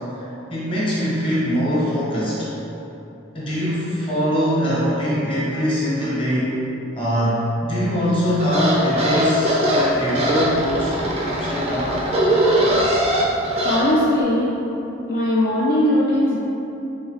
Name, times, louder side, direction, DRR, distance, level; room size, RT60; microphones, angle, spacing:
voice 1, 0.2-2.5 3.3-6.5 7.0-12.0, equal, 25° left, -8 dB, 0.9 m, -22 dB
sound 1, 8.4-13.8, equal, 30° right, 0.5 m, -21 dB
voice 2, 13.6-14.5 15.1-16.4, left 1 dB, 45° left, -7 dB, 0.4 m, -19 dB
3.6 x 3.1 x 3.2 m, 3.0 s
head